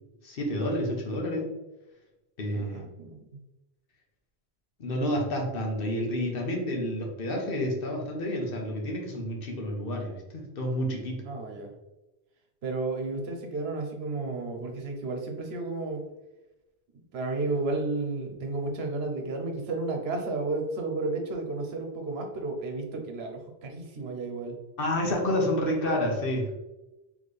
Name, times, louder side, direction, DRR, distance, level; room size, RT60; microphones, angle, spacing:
voice 1, 0.2-1.5 2.4-2.8 4.8-11.2 24.8-26.5, left 1 dB, 60° left, 0 dB, 1.1 m, -29 dB
voice 2, 2.5-3.4 11.3-11.7 12.6-16.0 17.1-24.6, right 3 dB, 75° right, 3 dB, 1.0 m, -32 dB
4.2 x 3.2 x 3.2 m, 1.0 s
omnidirectional pair, 1.1 m